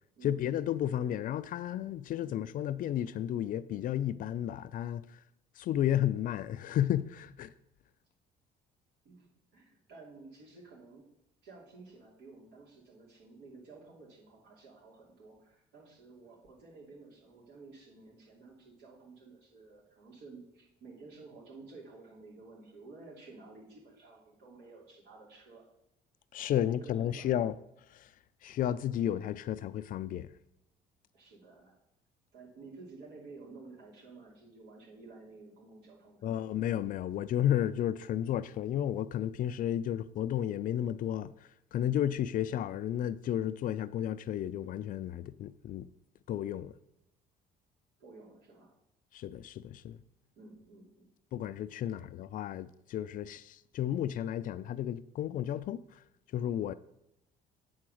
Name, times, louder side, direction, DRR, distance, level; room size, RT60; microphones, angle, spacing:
voice 1, 0.2-5.2 5.6-7.5 26.3-27.5 27.9-28.1 28.4-30.3 36.2-41.3 41.7-45.9 46.3-46.7 49.1-50.0 51.3-55.8 56.3-56.7, left 11 dB, 55° left, 0.4 m, -32 dB
voice 2, 0.9-1.2 2.2-2.4 9.0-11.0 11.4-25.6 26.5-27.4 31.1-31.8 32.3-36.2 42.3-42.5 48.0-48.7 50.4-51.1 51.9-52.1, right 3 dB, 80° right, 2.8 m, -53 dB
8.5 x 3.9 x 6.3 m
cardioid pair, 110°, 17 cm